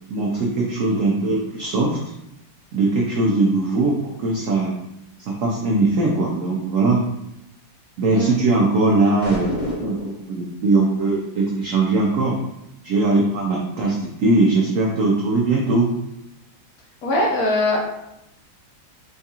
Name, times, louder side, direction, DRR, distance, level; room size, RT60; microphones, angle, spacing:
voice 1, 0.1-2.0 2.7-4.8 5.2-7.0 8.0-12.4 12.8-15.9, right 2 dB, 85° right, -2 dB, 0.7 m, -20 dB
sound 1, 9.2-10.3, left 1 dB, 40° left, 0.6 m, -28 dB
voice 2, 17.0-17.9, left 1 dB, 65° left, -1 dB, 1.0 m, -21 dB
4.4 x 2.4 x 2.8 m, 0.84 s
omnidirectional pair, 2.0 m